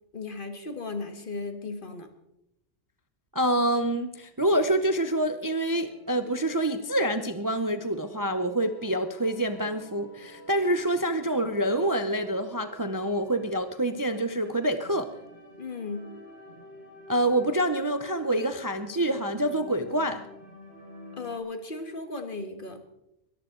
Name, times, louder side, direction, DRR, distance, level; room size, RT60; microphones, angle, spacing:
voice 1, 0.1-2.1 15.6-16.1 21.2-22.8, left 3 dB, 45° left, 7 dB, 1.8 m, -36 dB
voice 2, 3.3-15.1 17.1-20.2, right 1 dB, 20° right, 9 dB, 0.7 m, -26 dB
sound 1, 4.5-21.4, left 1 dB, 60° left, 6.9 m, -49 dB
22.0 x 14.0 x 3.8 m, 0.85 s
omnidirectional pair, 1.2 m